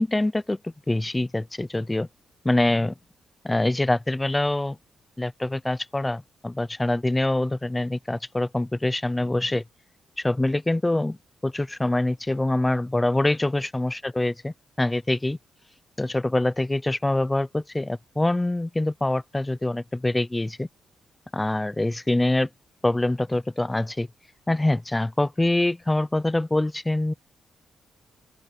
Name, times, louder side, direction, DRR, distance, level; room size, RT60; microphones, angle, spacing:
voice 1, 0.0-2.1 2.4-2.9 3.4-4.8 5.2-9.6 10.2-11.2 11.4-15.4 16.0-20.7 21.3-22.5 22.8-24.1 24.5-27.1, left 2 dB, 10° left, 0.6 m, -25 dB
open air
cardioid pair, 120°, 0 cm